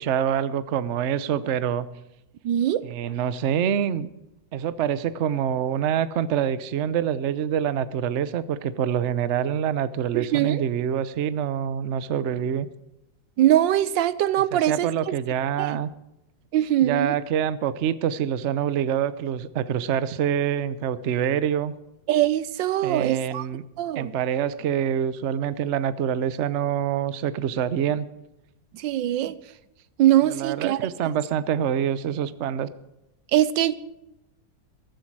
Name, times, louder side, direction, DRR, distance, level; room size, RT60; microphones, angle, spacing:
voice 1, 0.0-1.9 2.8-4.1 4.5-12.7 14.5-15.9 16.8-21.7 22.8-23.6 24.0-28.1 30.3-32.7, right 9 dB, 55° right, 0.8 m, -26 dB
voice 2, 2.4-2.8 10.1-10.6 13.4-15.1 15.6-15.8 16.5-17.2 22.1-23.5 23.8-24.1 28.7-29.4 30.0-30.8 33.3-33.7, right 12 dB, 90° right, 1.4 m, -22 dB
15.0 x 14.0 x 4.7 m
omnidirectional pair, 2.0 m